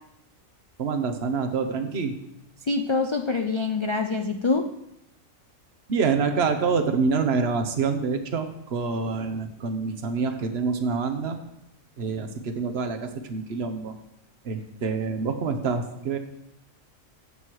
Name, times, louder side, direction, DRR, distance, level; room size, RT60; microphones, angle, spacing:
voice 1, 0.8-2.1 5.9-11.4 12.0-13.9 14.4-16.2, right 5 dB, 50° right, 7 dB, 1.3 m, -26 dB
voice 2, 2.7-4.7, left 3 dB, 45° left, 6 dB, 0.3 m, -25 dB
14.5 x 7.6 x 4.8 m, 0.82 s
omnidirectional pair, 1.4 m